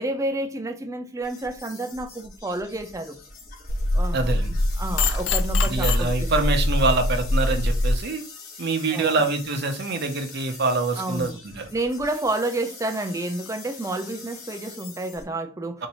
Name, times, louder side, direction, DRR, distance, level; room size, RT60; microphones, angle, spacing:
voice 1, 0.0-3.2 3.9-6.3 8.9-9.2 11.0-11.4 11.7-15.8, right 2 dB, 15° right, 0.4 m, -30 dB
sound 1, 1.2-15.2, left 4 dB, 45° left, 1.2 m, -43 dB
sound 2, 3.7-8.0, left 1 dB, 65° left, 0.5 m, -23 dB
voice 2, 4.1-4.5 5.7-8.2 8.6-11.3 11.5-11.7 15.8-15.9, right 3 dB, 55° right, 0.7 m, -25 dB
2.8 x 2.6 x 4.2 m
head